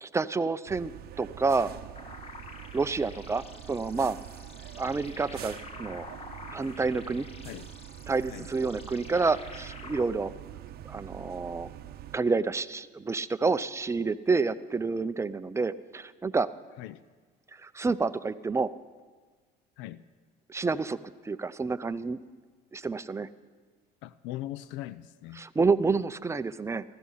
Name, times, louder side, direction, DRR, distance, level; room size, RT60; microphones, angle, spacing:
voice 1, 0.0-0.9 1.2-1.7 2.7-4.2 4.8-6.1 6.5-7.3 8.1-10.3 10.8-11.7 12.1-16.5 17.6-18.7 20.5-21.0 21.2-22.2 22.7-23.3 25.3-26.8, right 4 dB, 15° right, 13 dB, 0.5 m, -29 dB
sound 1, 0.7-12.2, right 12 dB, 55° right, 0.8 m, -45 dB
sound 2, 2.0-10.0, left 3 dB, 30° left, 1.3 m, -48 dB
voice 2, 24.0-25.4, left 14 dB, 75° left, 17 dB, 0.4 m, -40 dB
15.5 x 14.0 x 5.6 m, 1.4 s
supercardioid pair, 90°, 20 cm